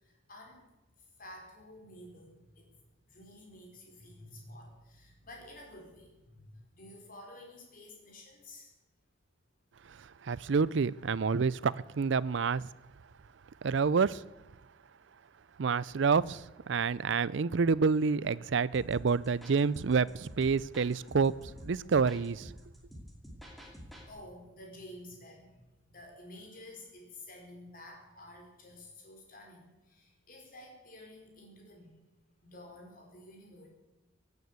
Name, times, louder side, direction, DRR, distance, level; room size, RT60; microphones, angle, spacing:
voice 1, 0.0-0.7 1.0-8.7 22.9-23.0 23.7-25.6 25.9-32.0 32.4-33.7, left 1 dB, 40° left, 4.5 m, -51 dB
voice 2, 10.2-12.7 13.6-14.2 15.6-21.3 21.6-22.5, right 5 dB, 65° right, 0.4 m, -28 dB
sound 1, 18.7-24.1, equal, ahead, 2.6 m, -49 dB
17.5 x 9.6 x 8.2 m
head